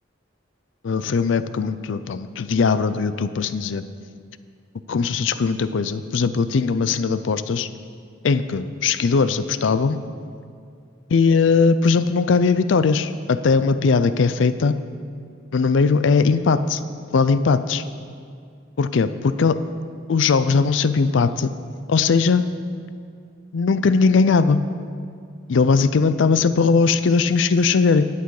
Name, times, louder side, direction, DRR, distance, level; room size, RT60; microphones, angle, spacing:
voice 1, 0.8-3.8 4.9-7.7 8.2-10.0 11.1-14.7 15.5-16.8 17.1-17.8 18.8-19.5 20.1-21.5 21.9-22.4 23.5-24.6 25.5-28.0, left 4 dB, 75° left, 13 dB, 0.4 m, -19 dB
12.0 x 8.2 x 4.8 m, 2.2 s
head